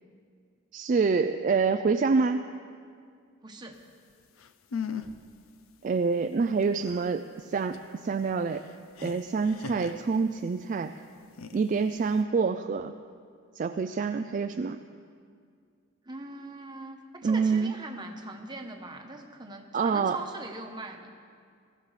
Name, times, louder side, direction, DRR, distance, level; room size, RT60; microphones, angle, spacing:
voice 1, 0.7-2.5 5.8-7.2 7.5-8.6 9.0-10.9 11.5-12.9 13.6-14.8 17.2-17.7 19.7-20.2, right 4 dB, 40° right, 8 dB, 0.3 m, -26 dB
voice 2, 3.4-3.8 16.0-21.1, right 2 dB, 20° right, 3 dB, 1.0 m, -41 dB
sound 1, 4.1-4.2 4.4-5.3 5.6-5.7 6.1-10.6 11.2-12.2, left 6 dB, 75° left, 0.6 m, -40 dB
22.0 x 14.5 x 3.3 m, 2.2 s
head